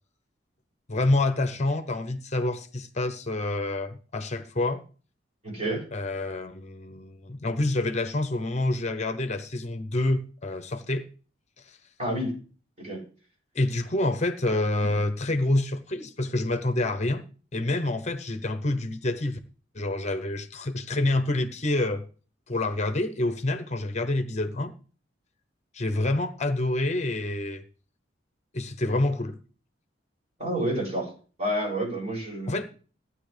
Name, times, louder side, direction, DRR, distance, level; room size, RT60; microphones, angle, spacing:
voice 1, 0.9-4.8 5.9-11.1 11.6-11.8 13.5-17.2 17.5-19.4 19.7-22.0 22.5-24.7 25.7-27.6 28.5-29.4 32.5-32.7, left 2 dB, 40° left, 9 dB, 0.9 m, -27 dB
voice 2, 5.4-5.8 12.0-12.3 12.8-13.0 30.4-31.1 31.4-32.6, right 1 dB, 35° right, -4 dB, 7.5 m, -29 dB
15.5 x 9.7 x 3.4 m, 0.38 s
head